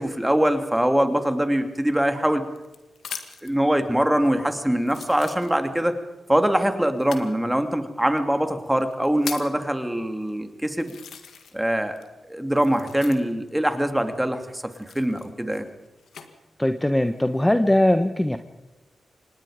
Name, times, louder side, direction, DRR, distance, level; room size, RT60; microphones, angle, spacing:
voice 1, 0.0-2.4 3.4-5.9 6.3-10.9 11.5-12.0 12.3-14.6 14.9-15.7, right 1 dB, 10° right, 7 dB, 2.8 m, -23 dB
sound 1, 1.9-3.6 4.3-4.4 4.8-5.9 7.0-7.3 8.2-8.3 8.8-9.6 10.3-10.4 10.8-11.7 12.0-13.5 14.7-16.3 16.9-17.4, left 7 dB, 85° left, 1.8 m, -40 dB
voice 2, 16.6-18.4, left 1 dB, 15° left, 8 dB, 1.3 m, -20 dB
26.5 x 19.5 x 5.1 m, 1.1 s
cardioid pair, 45°, 0 cm